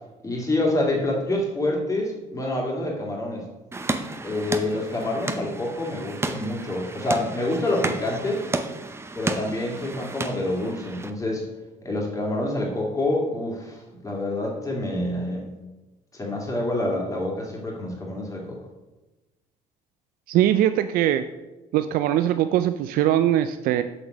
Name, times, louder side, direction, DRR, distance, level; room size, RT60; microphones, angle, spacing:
voice 1, 0.2-3.4 4.2-8.4 9.2-11.5 11.8-15.5 16.1-18.6, left 1 dB, 20° left, -1 dB, 2.2 m, -27 dB
sound 1, 3.7-11.1, right 3 dB, 15° right, 0.6 m, -32 dB
voice 2, 20.3-21.2 21.7-23.8, right 12 dB, 85° right, 10 dB, 0.4 m, -21 dB
6.2 x 6.1 x 5.1 m, 1.1 s
cardioid pair, 115°, 15 cm